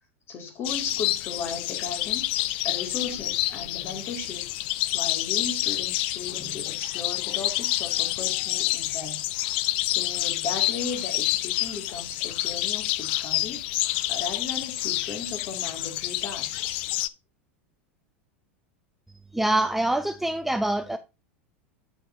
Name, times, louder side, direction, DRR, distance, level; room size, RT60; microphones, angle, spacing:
voice 1, 0.3-4.5 4.9-13.7 14.1-16.8, left 4 dB, 35° left, 2.2 m, -36 dB
sound 1, 0.6-17.1, left 17 dB, 55° left, 0.4 m, -28 dB
voice 2, 19.3-21.0, right 1 dB, 5° right, 0.4 m, -25 dB
9.1 x 6.4 x 2.6 m
figure-of-eight pair, 90°, 7 cm